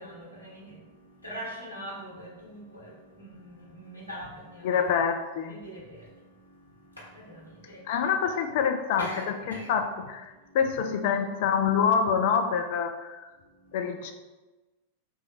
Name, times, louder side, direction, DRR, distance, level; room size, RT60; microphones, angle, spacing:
voice 1, 0.0-4.8 5.5-7.9 9.0-9.7 10.3-10.6 13.4-13.9, equal, 85° left, -6 dB, 1.2 m, -43 dB
voice 2, 4.6-5.6 7.8-13.3 13.7-14.1, left 7 dB, 50° left, 6 dB, 0.3 m, -26 dB
3.1 x 2.4 x 3.9 m, 1.2 s
figure-of-eight pair, 90°, 0 cm